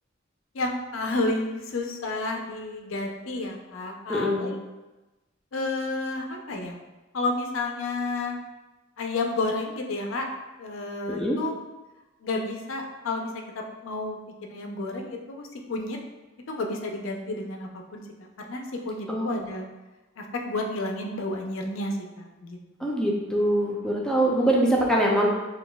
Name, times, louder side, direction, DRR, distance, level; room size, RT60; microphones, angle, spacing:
voice 1, 0.5-4.6 5.5-6.7 7.1-8.4 9.0-10.3 10.6-11.5 12.2-16.0 16.5-19.7 20.2-23.0, left 2 dB, 85° left, 2 dB, 0.6 m, -31 dB
voice 2, 4.1-4.5 11.1-11.4 19.1-19.5 22.8-25.3, right 1 dB, 5° left, -3 dB, 0.5 m, -23 dB
5.9 x 2.4 x 2.3 m, 1.1 s
head